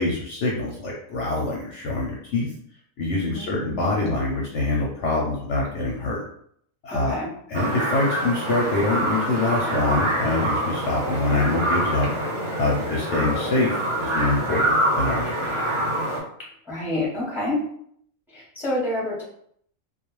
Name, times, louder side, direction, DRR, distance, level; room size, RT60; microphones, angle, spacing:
voice 1, 0.0-2.5 3.0-6.2 6.8-7.2 7.5-12.1 12.6-15.6, left 2 dB, 65° left, -3 dB, 0.8 m, -25 dB
voice 2, 3.3-4.1 6.9-7.3 16.6-17.6 18.3-19.2, left 1 dB, ahead, -6 dB, 0.7 m, -28 dB
sound 1, 7.5-16.2, right 1 dB, 55° right, 0.3 m, -25 dB
2.3 x 2.3 x 3.0 m, 0.66 s
omnidirectional pair, 1.5 m